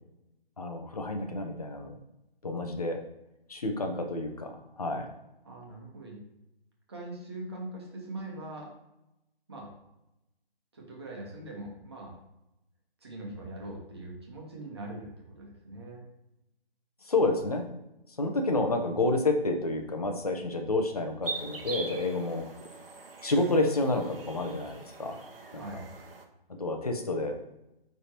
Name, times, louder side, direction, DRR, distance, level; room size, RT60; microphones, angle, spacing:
voice 1, 0.6-1.9 2.4-3.0 3.5-5.1 17.1-17.6 18.2-22.5 23.2-25.2 25.5-25.6 26.6-27.4, left 2 dB, 40° left, 4 dB, 0.8 m, -29 dB
voice 2, 5.4-6.2 6.9-8.7 9.5-9.7 10.7-12.1 13.0-16.0 25.5-25.9, right 2 dB, 25° right, -1 dB, 1.3 m, -42 dB
sound 1, 21.2-26.2, right 3 dB, 70° right, 1.1 m, -42 dB
9.2 x 3.5 x 2.9 m, 0.91 s
hypercardioid pair, 175°, 30 cm